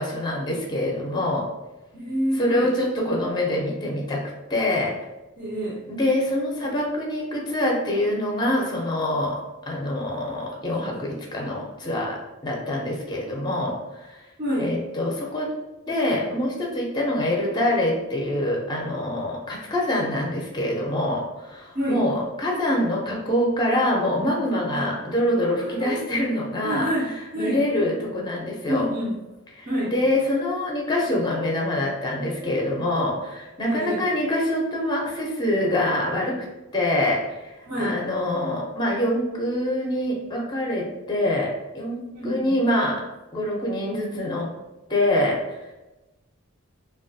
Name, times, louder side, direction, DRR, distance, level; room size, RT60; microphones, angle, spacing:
voice 1, 0.0-1.4 2.3-4.2 4.5-4.9 5.9-9.4 9.7-14.3 14.6-15.5 15.9-28.9 29.5-36.4 36.7-41.5 41.7-43.0 43.3-44.5 44.9-45.7, left 1 dB, 20° left, -2 dB, 0.5 m, -25 dB
voice 2, 1.9-2.7 5.4-5.8 14.4-14.7 21.7-22.0 24.7-24.9 25.6-26.0 26.6-27.1 27.3-27.6 28.7-29.1 29.7-29.9 33.6-34.0 37.7-38.0 42.1-42.5, equal, 40° right, -8 dB, 0.5 m, -27 dB
3.1 x 2.3 x 2.6 m, 1.0 s
head